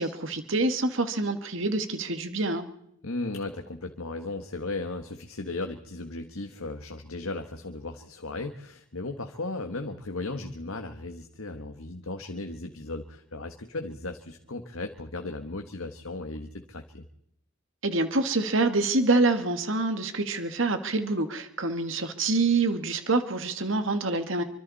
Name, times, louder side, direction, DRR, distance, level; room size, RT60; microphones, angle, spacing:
voice 1, 0.0-2.7 17.8-24.4, right 3 dB, 70° right, 8 dB, 1.9 m, -26 dB
voice 2, 3.0-17.0, left 2 dB, 85° left, 5 dB, 1.6 m, -36 dB
26.0 x 25.0 x 4.2 m, 0.75 s
head